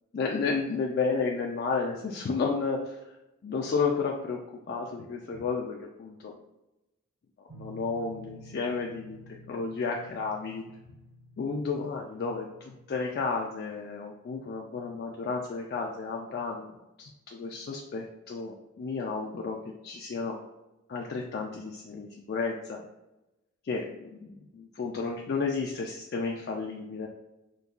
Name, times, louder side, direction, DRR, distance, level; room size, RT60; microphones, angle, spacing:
voice 1, 0.1-3.1 3.4-6.4 7.5-9.2 9.5-10.6 11.4-20.4 20.9-22.8 23.6-24.3 24.8-27.1, left 4 dB, 50° left, 0 dB, 0.3 m, -32 dB
sound 1, 7.5-13.1, equal, 35° right, 0.6 m, -51 dB
5.1 x 2.2 x 2.4 m, 0.97 s
head